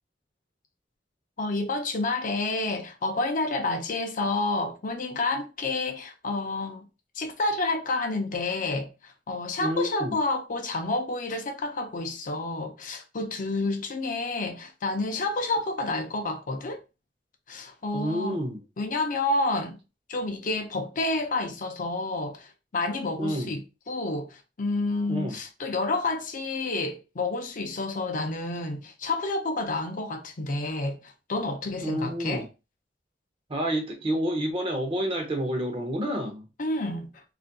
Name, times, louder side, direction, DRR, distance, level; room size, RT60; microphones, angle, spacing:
voice 1, 1.4-6.9 7.1-16.8 17.5-18.4 18.8-19.8 20.1-32.5 36.6-37.2, left 2 dB, 45° left, 0.5 m, -29 dB
voice 2, 9.6-10.2 17.9-18.6 23.2-23.5 25.1-25.4 31.8-32.5 33.5-36.5, equal, 30° right, 0.6 m, -29 dB
3.9 x 2.5 x 2.2 m
head